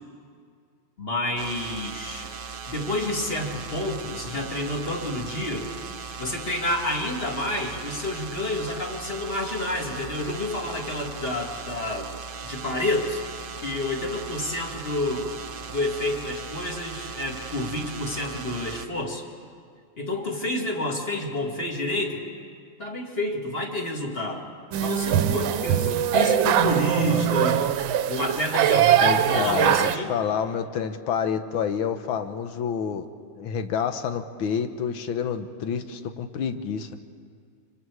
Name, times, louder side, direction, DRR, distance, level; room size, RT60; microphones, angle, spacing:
voice 1, 1.0-2.3 2.7-5.7 6.2-12.1 12.4-13.2 13.6-15.3 15.7-19.2 20.0-22.2 22.8-24.4 24.8-27.7 28.1-30.1, left 1 dB, 30° left, 1 dB, 2.0 m, -29 dB
sound 1, 1.4-18.9, right 5 dB, 55° right, 0.6 m, -38 dB
sound 2, 24.7-30.0, right 10 dB, 75° right, 1.4 m, -22 dB
voice 2, 29.0-33.1 33.4-36.9, left 7 dB, 80° left, 9 dB, 1.7 m, -28 dB
25.5 x 25.0 x 4.7 m, 2.1 s
omnidirectional pair, 2.2 m